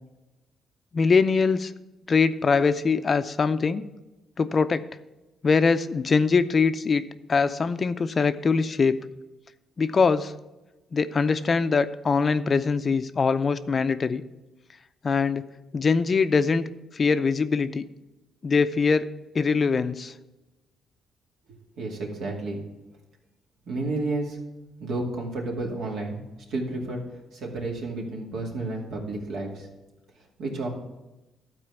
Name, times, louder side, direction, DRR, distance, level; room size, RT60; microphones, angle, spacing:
voice 1, 0.9-1.7 2.1-3.8 4.4-4.8 5.4-7.0 7.3-9.0 9.8-10.3 10.9-14.2 15.0-15.4 15.7-16.6 16.9-17.8 18.4-19.1 19.3-20.1, left 5 dB, 40° left, 12 dB, 0.5 m, -22 dB
voice 2, 21.8-22.6 23.7-24.4 24.8-26.2 26.5-27.0 27.3-29.7 30.4-30.7, right 2 dB, 75° right, -1 dB, 2.4 m, -31 dB
12.0 x 4.4 x 6.9 m, 1.0 s
cardioid pair, 90°, 0 cm